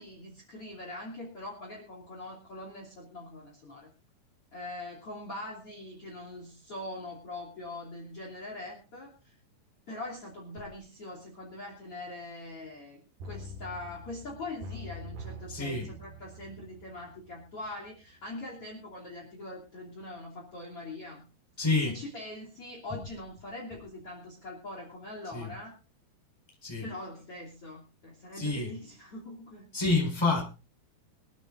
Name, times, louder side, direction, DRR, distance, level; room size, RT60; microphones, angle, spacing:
voice 1, 0.0-3.9 4.5-9.3 9.9-21.2 21.8-25.8 26.8-29.7, left 2 dB, 35° left, 1 dB, 3.6 m, -42 dB
sound 1, 13.2-17.9 18.2-18.3, equal, 60° right, 3.1 m, -45 dB
voice 2, 15.5-15.9 21.6-22.0 25.3-25.5 26.6-26.9 28.3-28.7 29.7-30.5, left 3 dB, 5° left, 0 dB, 4.1 m, -28 dB
25.5 x 9.3 x 2.6 m, 0.32 s
omnidirectional pair, 4.9 m